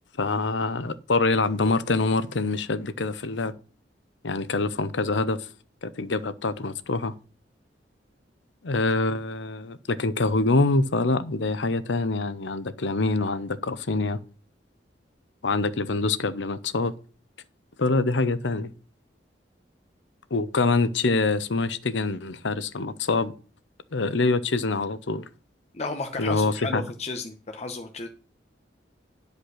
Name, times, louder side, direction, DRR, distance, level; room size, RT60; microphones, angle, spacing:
voice 1, 0.2-3.5 4.2-5.5 5.8-7.1 8.6-14.2 15.4-16.9 17.8-18.7 20.3-23.3 23.9-25.3 26.2-26.9, left 3 dB, 80° left, 0.8 m, -25 dB
voice 2, 25.7-28.1, left 3 dB, 40° left, 1.0 m, -33 dB
10.5 x 5.3 x 6.3 m
head